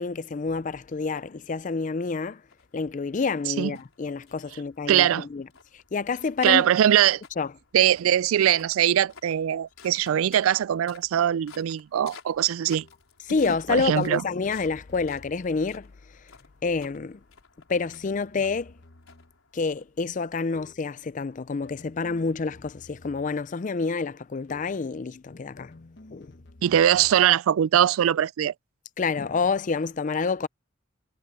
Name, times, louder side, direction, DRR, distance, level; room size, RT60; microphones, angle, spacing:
voice 1, 0.0-2.4 2.7-5.5 5.9-6.7 7.4-7.5 13.3-15.9 16.6-17.2 17.7-18.7 19.5-25.7 26.1-26.3 29.0-30.5, left 4 dB, 40° left, 0.4 m, -28 dB
sound 1, 2.5-20.2, left 6 dB, 90° left, 4.6 m, -54 dB
voice 2, 4.9-5.3 6.4-7.2 7.7-12.8 13.7-14.2 26.6-28.5, right 10 dB, 90° right, 0.3 m, -21 dB
sound 2, 12.7-13.1 13.8-15.6 16.6-17.0 17.7-19.4 20.5-21.0 21.6-23.6 24.5-24.9 25.6-27.4, left 2 dB, 55° left, 1.0 m, -51 dB
head